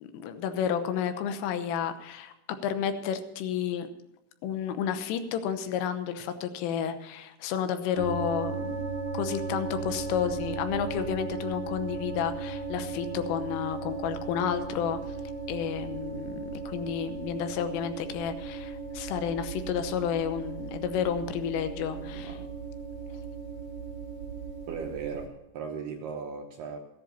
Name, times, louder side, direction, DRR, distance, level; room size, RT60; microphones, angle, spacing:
voice 1, 0.0-3.9 4.4-8.8 9.1-15.0 15.5-22.4, left 8 dB, 80° left, 9 dB, 3.6 m, -31 dB
sound 1, 8.0-25.3, right 4 dB, 45° right, 3.9 m, -36 dB
voice 2, 22.0-22.5 24.7-26.8, right 6 dB, 75° right, 2 dB, 2.5 m, -37 dB
15.0 x 10.5 x 5.6 m, 0.95 s
omnidirectional pair, 5.8 m